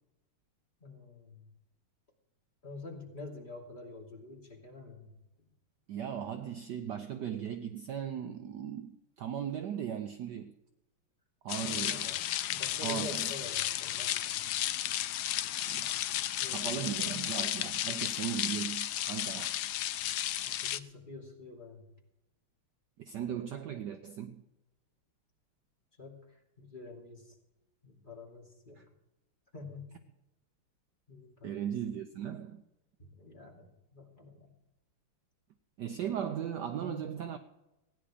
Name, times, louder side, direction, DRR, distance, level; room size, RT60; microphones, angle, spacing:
voice 1, 0.8-1.5 2.6-5.1 11.6-12.2 12.5-14.5 16.4-17.3 20.5-21.9 26.0-27.4 27.8-28.8 29.5-30.0 31.1-31.7 33.0-34.5 36.8-37.1, left 3 dB, 20° left, 2.7 m, -47 dB
voice 2, 5.9-10.5 11.4-12.1 12.8-13.3 15.7-15.9 16.5-19.5 23.0-24.4 28.8-28.9 31.4-32.6 35.8-37.4, right 9 dB, 65° right, 1.1 m, -37 dB
sound 1, 11.5-20.8, left 12 dB, 85° left, 0.9 m, -33 dB
16.5 x 9.9 x 5.0 m
omnidirectional pair, 2.4 m